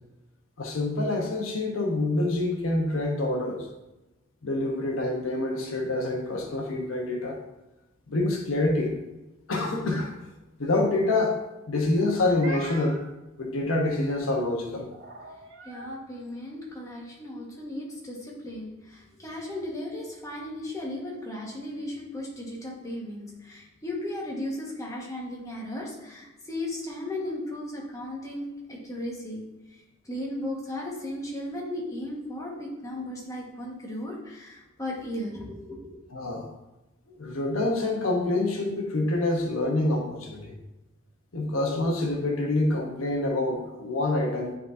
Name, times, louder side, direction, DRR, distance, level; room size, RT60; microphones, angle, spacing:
voice 1, 0.6-3.7 4.4-7.4 8.1-8.9 9.5-10.1 10.6-11.4 11.7-13.0 13.4-14.9 36.1-36.5 37.2-40.5 41.3-44.6, left 2 dB, 90° left, 1 dB, 1.0 m, -26 dB
Meow, 11.9-13.1 14.9-16.0, right 1 dB, 85° right, 1.7 m, -42 dB
voice 2, 15.6-29.4 29.7-35.8, left 1 dB, 15° left, -3 dB, 1.4 m, -36 dB
10.0 x 3.9 x 2.7 m, 0.99 s
head